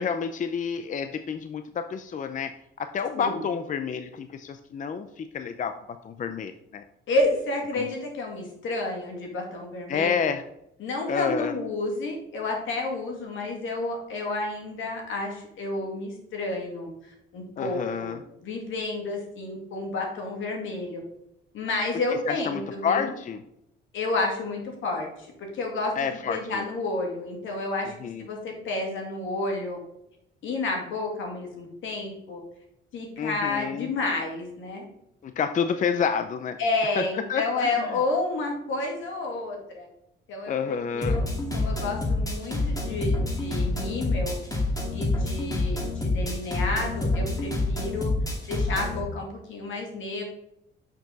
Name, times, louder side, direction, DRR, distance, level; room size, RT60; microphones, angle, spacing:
voice 1, 0.0-2.5 2.8-5.7 6.0-6.8 7.8-7.9 9.9-10.4 11.1-11.5 17.6-18.2 22.3-23.4 26.0-26.6 28.0-28.2 33.2-33.9 35.2-36.6 37.0-37.9 40.5-41.2, left 6 dB, 40° left, 9 dB, 0.5 m, -29 dB
voice 2, 7.1-10.3 10.8-16.9 17.3-21.0 21.5-23.1 23.9-27.9 28.2-29.8 30.4-32.4 32.9-34.9 36.6-39.9 40.3-41.3 41.5-44.4 44.9-48.1 48.5-50.2, left 2 dB, 75° left, 1 dB, 2.4 m, -30 dB
sound 1, 41.0-49.0, left 2 dB, 20° left, 2.4 m, -27 dB
6.7 x 5.9 x 4.0 m, 0.79 s
cardioid pair, 90°, 20 cm